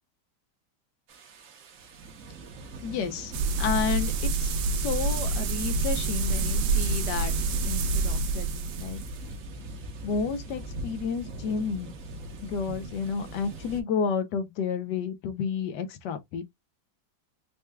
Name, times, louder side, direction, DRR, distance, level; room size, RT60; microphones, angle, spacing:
sound 1, 1.1-13.8, right 2 dB, 60° right, 1.1 m, -42 dB
voice 1, 2.8-3.3 3.6-7.3 7.6-9.0 10.0-11.9 12.4-16.4, left 6 dB, 80° left, 1.3 m, -31 dB
sound 2, 3.3-9.3, right 3 dB, 90° right, 1.3 m, -27 dB
4.4 x 2.2 x 3.3 m
omnidirectional pair, 1.8 m